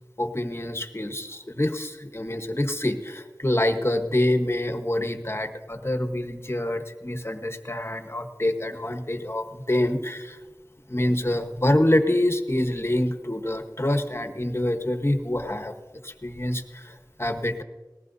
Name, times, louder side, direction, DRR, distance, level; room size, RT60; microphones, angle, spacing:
voice 1, 0.2-10.4 10.9-15.7 16.0-17.6, left 1 dB, 35° left, 7 dB, 1.1 m, -26 dB
19.5 x 15.0 x 2.7 m, 1.3 s
wide cardioid pair, 40°, 7 cm